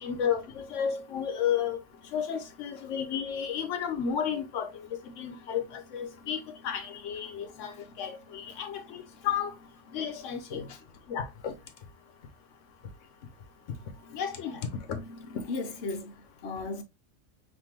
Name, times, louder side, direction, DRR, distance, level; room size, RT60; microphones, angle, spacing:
voice 1, 0.0-1.8 2.1-4.7 5.2-5.6 5.9-9.5 9.9-10.6 11.1-11.5 14.1-14.6 14.9-15.4, left 8 dB, 85° left, 1.1 m, -32 dB
voice 2, 10.5-10.8 15.5-16.8, left 3 dB, 65° left, 1.0 m, -36 dB
5.5 x 2.6 x 2.8 m
omnidirectional pair, 1.2 m